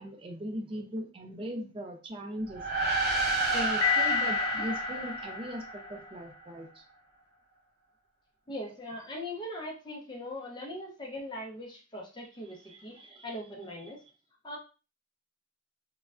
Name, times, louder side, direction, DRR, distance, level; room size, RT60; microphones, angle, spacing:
voice 1, 0.0-2.7 3.5-6.8 12.5-13.4 13.8-14.1, equal, 25° right, 4 dB, 0.4 m, -39 dB
sound 1, 2.5-6.2, right 2 dB, 50° right, 0.7 m, -30 dB
Piano, 3.8-5.8, left 12 dB, 65° left, 0.5 m, -31 dB
voice 2, 8.5-13.0 13.2-14.0 14.4-14.6, left 1 dB, 25° left, -1 dB, 0.6 m, -40 dB
3.1 x 2.2 x 2.4 m, 0.33 s
head